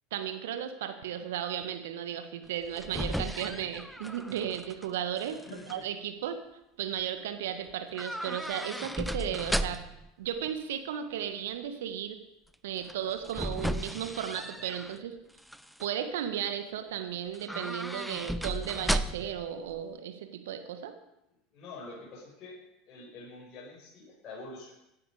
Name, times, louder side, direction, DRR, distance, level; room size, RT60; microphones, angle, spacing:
voice 1, 0.1-5.4 5.7-6.4 6.8-9.8 10.2-12.2 12.6-15.1 15.8-20.9, right 9 dB, 70° right, 8 dB, 1.6 m, -35 dB
sound 1, 2.5-4.9 5.2-5.7 7.9-10.1 12.8-15.0 15.4-15.9 17.3-19.4 19.7-19.8, equal, ahead, 0.7 m, -35 dB
voice 2, 5.5-5.8 21.5-22.6 22.9-24.7, left 3 dB, 45° left, -4 dB, 5.5 m, -46 dB
16.5 x 11.0 x 5.0 m, 0.88 s
hypercardioid pair, 80°, 0 cm